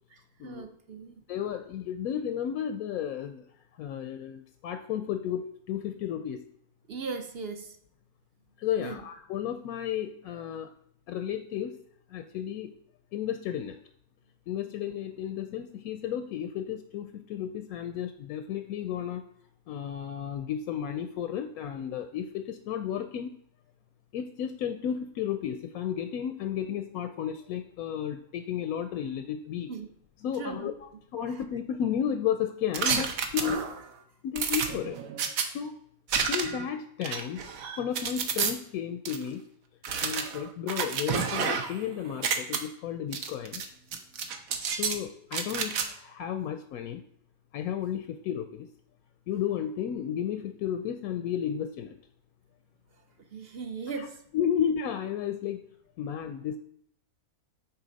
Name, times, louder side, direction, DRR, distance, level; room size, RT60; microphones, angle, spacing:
voice 1, 0.1-1.2 6.9-7.8 8.8-9.0 29.7-29.9 30.3-30.7 31.3-31.4 34.4-34.5 53.3-54.2, right 4 dB, 50° right, 6 dB, 0.8 m, -38 dB
voice 2, 1.3-3.5 3.8-6.4 8.6-10.7 11.1-11.8 12.1-12.7 13.1-13.8 14.5-19.2 19.7-23.3 24.1-29.7 30.2-33.7 34.2-35.0 35.5-35.7 36.3-37.5 37.8-39.4 40.0-43.6 44.8-47.0 47.5-48.7 49.3-51.9 54.3-55.7 56.0-56.6, left 9 dB, 80° left, 8 dB, 1.0 m, -33 dB
sound 1, 32.7-33.8 34.4-35.5 36.1-36.7 37.0-38.5 39.1-39.2 39.8-41.8 42.1-42.6 43.1-43.7 43.9-45.0 45.3-45.9, right 6 dB, 75° right, 1.2 m, -30 dB
9.7 x 4.4 x 4.0 m, 0.68 s
omnidirectional pair, 1.5 m